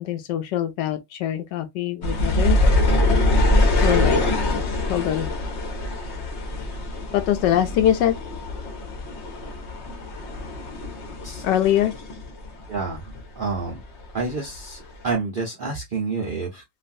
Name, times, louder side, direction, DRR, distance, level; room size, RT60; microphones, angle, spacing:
voice 1, 0.0-2.6 3.8-4.2 4.9-5.3 7.1-8.2 11.4-11.9, left 11 dB, 80° left, 1.2 m, -23 dB
sound 1, 2.0-13.2 13.5-14.6 15.1-15.2, left 1 dB, 50° left, 0.9 m, -24 dB
voice 2, 12.7-13.8 14.1-16.6, right 4 dB, 80° right, 0.4 m, -29 dB
3.1 x 2.4 x 2.5 m
omnidirectional pair, 1.9 m